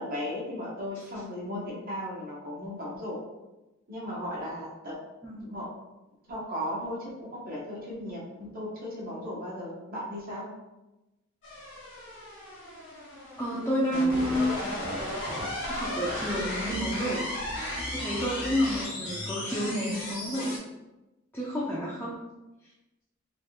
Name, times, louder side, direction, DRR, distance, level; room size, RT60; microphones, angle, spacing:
voice 1, 0.0-3.2 3.9-4.9 5.4-5.7 6.3-10.5, left 1 dB, 50° right, -4 dB, 0.9 m, -36 dB
sound 1, 11.4-20.6, left 1 dB, 65° left, 1.1 m, -35 dB
voice 2, 13.4-14.6 15.7-17.3 17.9-20.6 21.3-22.1, equal, 10° left, -7 dB, 0.5 m, -29 dB
3.3 x 2.5 x 2.8 m, 1.0 s
head